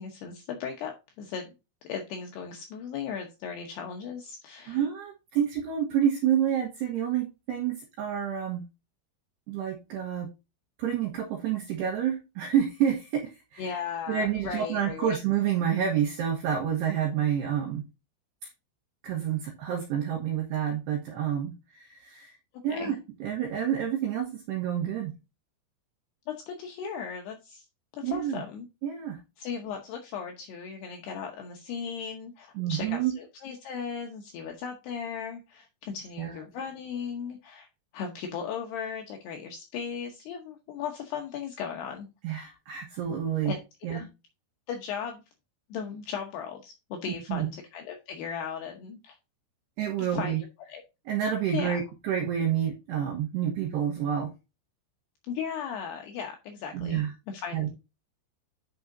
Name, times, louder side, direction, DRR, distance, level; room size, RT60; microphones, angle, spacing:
voice 1, 0.0-1.5 1.9-4.8 13.6-15.2 22.7-22.9 26.3-27.7 27.9-28.7 29.4-37.7 37.9-42.1 43.4-43.6 43.9-44.1 44.7-45.2 45.7-49.2 50.0-50.4 50.7-50.8 51.5-51.8 55.3-57.7, left 7 dB, 80° left, 3 dB, 2.4 m, -37 dB
voice 2, 4.7-8.6 9.5-10.3 10.8-13.7 14.1-17.9 19.0-22.4 22.6-25.2 28.0-28.4 28.8-29.2 32.6-33.1 36.2-36.3 42.2-43.5 43.8-44.0 47.3-47.5 49.8-50.4 51.1-54.3 56.7-57.1 57.5-57.7, right 9 dB, 70° right, 0 dB, 2.8 m, -28 dB
10.5 x 5.6 x 2.6 m, 0.26 s
omnidirectional pair, 6.0 m